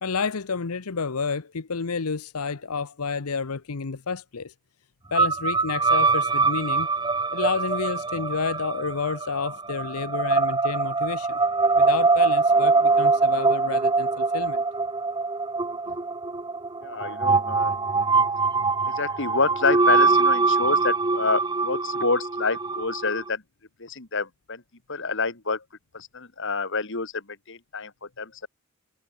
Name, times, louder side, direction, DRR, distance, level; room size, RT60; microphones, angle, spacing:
voice 1, 0.0-4.5 5.1-6.9 7.3-11.4 11.8-14.6 15.9-16.0, left 5 dB, 80° left, 0.9 m, -30 dB
sound 1, 5.1-23.3, right 4 dB, 20° right, 0.9 m, -23 dB
voice 2, 16.8-17.8 18.9-23.4 23.8-24.6 24.9-25.6 25.9-27.9 28.2-28.5, left 4 dB, 55° left, 2.4 m, -28 dB
head